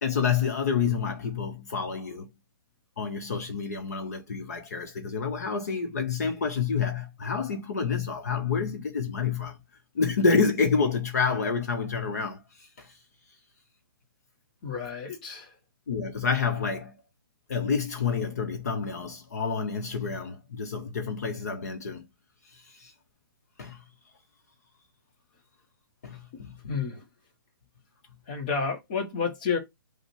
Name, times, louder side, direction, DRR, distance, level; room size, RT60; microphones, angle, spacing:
voice 1, 0.0-2.3 3.0-9.6 9.9-12.9 15.9-16.9 17.5-22.0 22.5-22.9 23.6-23.8 26.0-26.6, left 5 dB, 45° left, 0.8 m, -28 dB
voice 2, 14.6-15.5 26.3-26.4 26.7-27.0 28.3-29.6, left 5 dB, 20° left, 0.9 m, -30 dB
5.4 x 2.1 x 4.5 m
hypercardioid pair, 175°, 12 cm